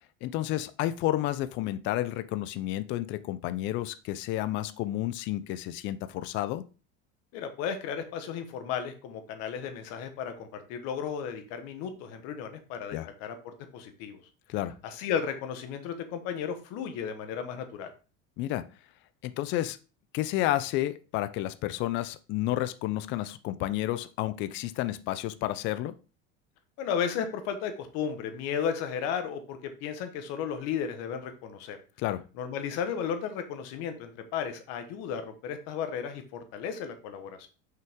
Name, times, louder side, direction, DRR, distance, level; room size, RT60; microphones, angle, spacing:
voice 1, 0.2-6.7 12.9-13.1 14.5-14.7 18.4-18.6 19.2-19.8 20.1-25.9 32.0-32.2, left 14 dB, 40° left, 14 dB, 0.5 m, -31 dB
voice 2, 7.3-13.3 13.7-14.2 14.8-17.9 26.8-31.8 32.4-37.5, left 7 dB, 55° left, 7 dB, 1.3 m, -34 dB
6.1 x 5.7 x 3.6 m, 0.34 s
cardioid pair, 170°, 30 cm